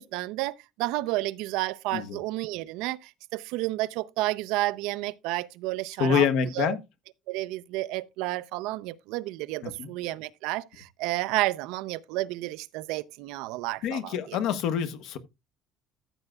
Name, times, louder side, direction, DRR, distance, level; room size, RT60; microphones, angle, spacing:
voice 1, 0.0-6.3 6.6-6.8 7.3-14.4, right 18 dB, 85° right, 0.5 m, -31 dB
voice 2, 6.0-6.8 9.6-9.9 13.8-15.2, left 8 dB, 65° left, 1.1 m, -26 dB
14.0 x 7.8 x 2.3 m
cardioid pair, 165°, 0 cm